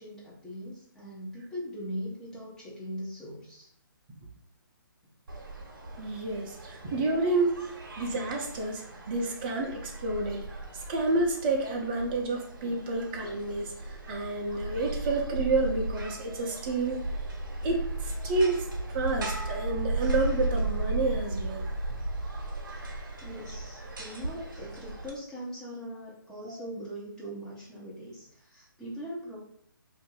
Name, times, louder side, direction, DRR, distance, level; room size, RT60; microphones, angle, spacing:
voice 1, 0.0-3.7 12.6-12.8 23.2-29.4, equal, 5° left, -7 dB, 0.7 m, -40 dB
sound 1, 5.3-25.1, right 2 dB, 60° right, 0.8 m, -36 dB
voice 2, 6.0-10.5 10.9-17.0 17.6-21.7, right 2 dB, 25° right, 0 dB, 0.6 m, -30 dB
2.6 x 2.6 x 3.7 m, 0.70 s
figure-of-eight pair, 140°, 12 cm